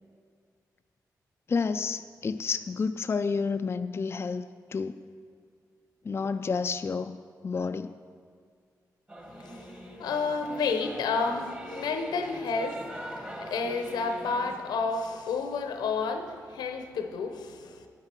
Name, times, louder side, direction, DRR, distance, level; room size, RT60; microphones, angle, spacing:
voice 1, 1.5-5.0 6.0-7.2 7.4-7.9, left 5 dB, 35° left, 9 dB, 0.3 m, -30 dB
Singing / Musical instrument, 9.1-14.6, equal, 20° right, 1.7 m, -42 dB
voice 2, 9.4-9.7 10.0-12.8 13.4-17.8, left 4 dB, 90° left, 7 dB, 0.8 m, -30 dB
9.9 x 9.5 x 4.5 m, 2.1 s
cardioid pair, 55°, 7 cm